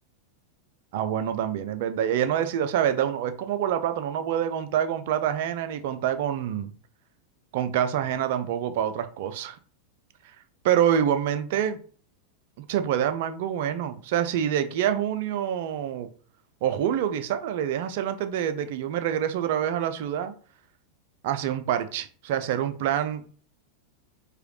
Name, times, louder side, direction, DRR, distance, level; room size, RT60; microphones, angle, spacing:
voice 1, 0.9-6.7 7.5-9.6 10.6-11.8 12.6-16.1 16.6-20.3 21.2-23.2, right 9 dB, 50° right, 0.4 m, -26 dB
4.7 x 2.3 x 3.0 m
figure-of-eight pair, 90°, 0 cm